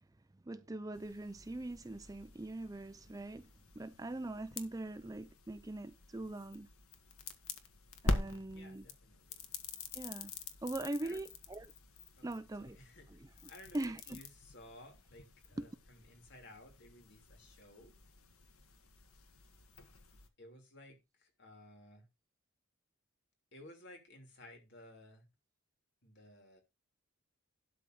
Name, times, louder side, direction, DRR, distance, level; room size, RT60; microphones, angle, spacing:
voice 1, 0.4-3.5 3.8-6.7 8.0-8.9 9.9-10.3 10.6-11.7 12.2-12.8 13.1-14.2 15.6-15.7, right 2 dB, 15° right, 0.4 m, -42 dB
sound 1, 0.9-20.3, left 2 dB, 85° left, 1.6 m, -45 dB
voice 2, 8.5-9.5 11.0-11.2 12.2-13.2 13.5-18.0 20.4-22.1 23.5-25.3 26.0-26.6, left 1 dB, 50° left, 2.9 m, -57 dB
12.0 x 4.1 x 6.4 m
head